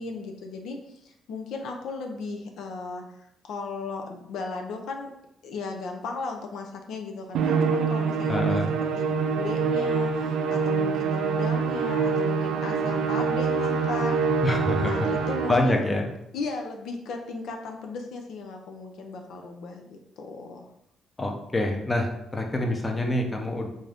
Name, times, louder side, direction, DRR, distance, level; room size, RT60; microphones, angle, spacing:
voice 1, 0.0-3.0 3.4-5.1 5.4-8.6 9.0-14.2 14.8-15.9 16.3-20.7, left 4 dB, 80° left, 3 dB, 0.5 m, -36 dB
Musical instrument, 7.3-15.8, right 5 dB, 80° right, 0.4 m, -25 dB
voice 2, 8.3-8.8 14.4-15.1 15.5-16.1 21.2-23.7, left 1 dB, 25° left, 2 dB, 0.6 m, -26 dB
3.6 x 2.6 x 3.4 m, 0.79 s
cardioid pair, 90°, 0 cm